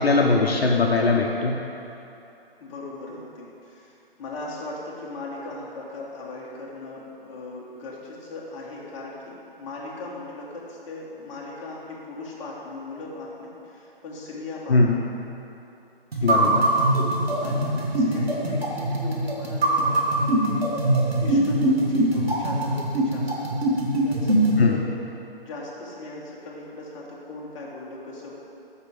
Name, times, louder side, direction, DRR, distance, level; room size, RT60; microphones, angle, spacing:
voice 1, 0.0-1.5 14.7-15.0 16.2-16.6 24.6-24.9, left 3 dB, 80° left, 0 dB, 0.9 m, -20 dB
voice 2, 2.6-14.8 16.1-16.5 17.4-20.6 21.2-23.3 23.7-24.9 25.4-28.4, left 2 dB, 30° left, -4 dB, 1.3 m, -38 dB
sound 1, 16.1-24.6, right 1 dB, 80° right, 1.5 m, -22 dB
5.8 x 4.7 x 6.2 m, 2.8 s
figure-of-eight pair, 140°, 30 cm